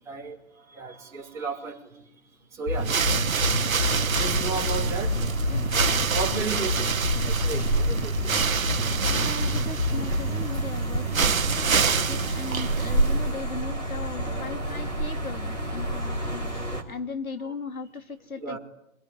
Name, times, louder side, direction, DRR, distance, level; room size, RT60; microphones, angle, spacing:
voice 1, 0.7-1.8 2.5-2.9 3.6-3.8 4.2-5.1 6.1-6.9 7.3-8.3 18.3-18.6, right 4 dB, 5° right, -3 dB, 2.3 m, -33 dB
sound 1, 2.7-10.7, left 4 dB, 60° left, 3.8 m, -29 dB
sound 2, 2.7-13.4, right 6 dB, 70° right, 1.2 m, -27 dB
sound 3, 3.8-16.8, right 1 dB, 10° left, 3.5 m, -30 dB
voice 2, 5.5-5.8 9.0-18.6, left 4 dB, 80° left, 8 dB, 2.6 m, -38 dB
26.0 x 22.0 x 10.0 m, 0.79 s
hypercardioid pair, 165°, 43 cm